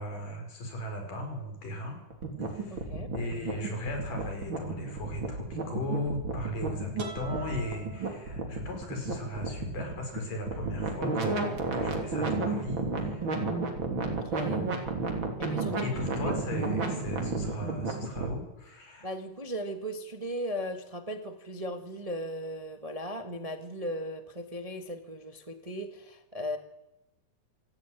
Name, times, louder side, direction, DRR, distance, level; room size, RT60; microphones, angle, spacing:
voice 1, 0.0-2.0 2.4-2.8 3.1-13.2 15.8-19.1, left 1 dB, 85° left, 3 dB, 6.7 m, -37 dB
sound 1, 2.1-18.3, right 3 dB, 40° right, 3.8 m, -32 dB
voice 2, 2.7-3.1 14.0-14.8 15.4-16.0 16.6-16.8 19.0-26.6, equal, 20° right, 6 dB, 1.1 m, -37 dB
sound 2, 7.0-8.9, right 3 dB, 55° right, 5.1 m, -44 dB
27.5 x 14.5 x 9.3 m, 0.93 s
omnidirectional pair, 3.7 m